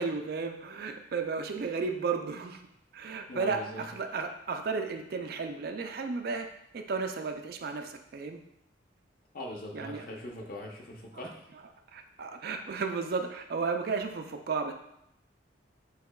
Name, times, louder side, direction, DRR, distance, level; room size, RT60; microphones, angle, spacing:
voice 1, 0.0-2.6 2.9-8.4 9.7-10.1 11.1-11.6 11.9-14.7, right 4 dB, 50° right, 6 dB, 0.4 m, -34 dB
voice 2, 3.3-3.8 9.3-11.4, left 1 dB, 45° left, 0 dB, 0.8 m, -41 dB
8.1 x 2.9 x 2.3 m, 0.78 s
head